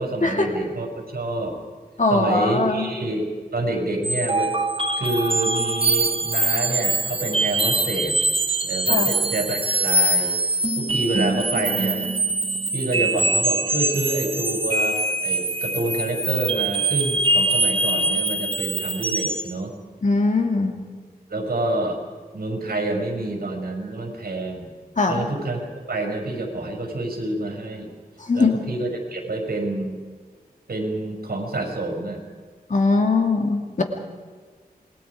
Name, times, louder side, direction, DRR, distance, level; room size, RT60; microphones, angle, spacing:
voice 1, 0.0-1.6 2.1-3.2 3.5-4.5 5.0-8.2 8.6-10.3 10.7-12.0 12.7-19.7 21.3-22.0 22.3-24.7 25.1-27.9 28.3-30.0 30.7-32.2, right 2 dB, 70° right, 3 dB, 6.2 m, -27 dB
voice 2, 2.0-2.9 8.9-9.2 20.0-20.8 25.0-25.3 28.3-28.6 32.7-33.8, left 3 dB, 50° left, 4 dB, 2.5 m, -21 dB
sound 1, 4.0-19.5, right 2 dB, 35° right, 1.3 m, -23 dB
28.0 x 21.5 x 5.0 m, 1.5 s
wide cardioid pair, 85°, 16 cm